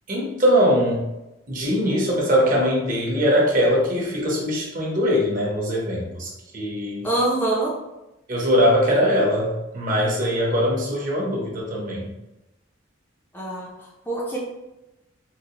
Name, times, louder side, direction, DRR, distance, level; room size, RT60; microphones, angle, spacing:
voice 1, 0.1-1.1 1.5-7.1 8.3-12.1, equal, 40° right, -3 dB, 0.8 m, -21 dB
voice 2, 7.0-7.7 13.3-14.4, right 2 dB, 10° left, -4 dB, 0.4 m, -25 dB
3.9 x 2.1 x 2.8 m, 0.95 s
head